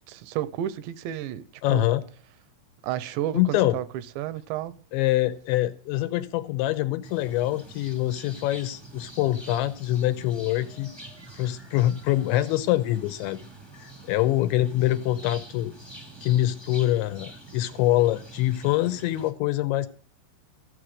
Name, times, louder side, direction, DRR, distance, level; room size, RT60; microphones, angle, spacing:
voice 1, 0.1-1.9 2.8-3.9 4.2-4.8, right 12 dB, 75° right, 2.8 m, -31 dB
voice 2, 1.6-2.0 3.3-3.8 4.9-10.9 11.3-13.4 13.7-15.7 16.2-19.9, left 15 dB, 80° left, 2.9 m, -25 dB
sound 1, 7.0-19.3, right 2 dB, 20° right, 0.7 m, -46 dB
15.5 x 8.4 x 6.3 m
omnidirectional pair, 5.8 m